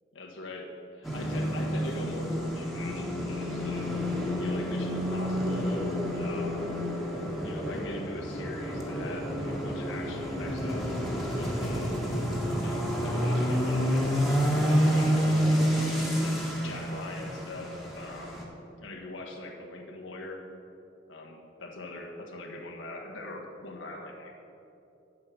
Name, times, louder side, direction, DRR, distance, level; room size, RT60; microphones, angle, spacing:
voice 1, 0.1-4.0 4.4-6.7 7.4-10.9 11.3-11.9 12.6-18.5 18.8-20.4 21.1-24.3, left 2 dB, 90° left, 0 dB, 1.5 m, -42 dB
sound 1, 1.0-18.4, equal, ahead, 1.5 m, -29 dB
8.3 x 7.7 x 6.1 m, 2.9 s
head